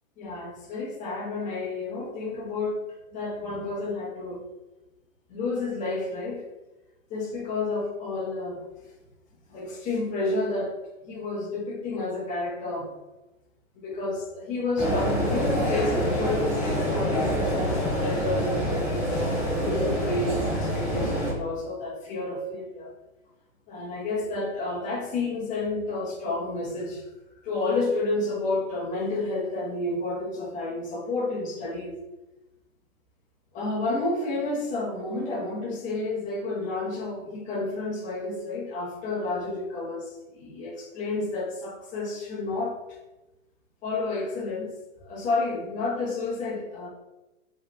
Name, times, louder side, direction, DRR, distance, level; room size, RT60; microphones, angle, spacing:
voice 1, 0.2-2.8 3.1-4.4 5.3-6.4 7.1-8.6 9.5-10.8 11.0-12.9 13.7-19.1 19.6-22.9 23.7-27.1 27.4-32.0 33.5-42.8 43.8-44.7 45.0-46.9, left 2 dB, 20° left, -3 dB, 1.0 m, -30 dB
sound 1, 14.8-21.3, equal, ahead, 0.4 m, -26 dB
4.9 x 3.3 x 3.2 m, 1.0 s
hypercardioid pair, 145°, 42 cm